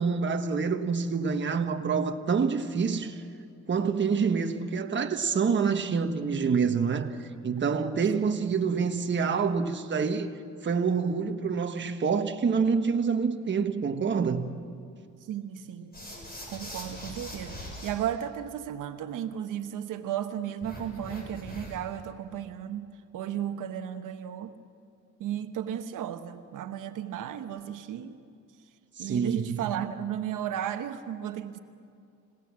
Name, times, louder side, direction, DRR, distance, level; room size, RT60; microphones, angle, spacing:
voice 1, 0.0-3.2 3.7-7.2 7.4-10.3 10.6-14.5 29.0-29.6, right 5 dB, 35° right, 1.3 m, -27 dB
voice 2, 15.3-15.9 16.5-24.6 25.2-28.2 29.0-31.6, right 10 dB, 85° right, 1.1 m, -34 dB
sound 1, 15.9-17.9 20.6-21.9, left 1 dB, 30° left, 7.1 m, -41 dB
27.0 x 17.5 x 7.5 m
cardioid pair, 115°, 31 cm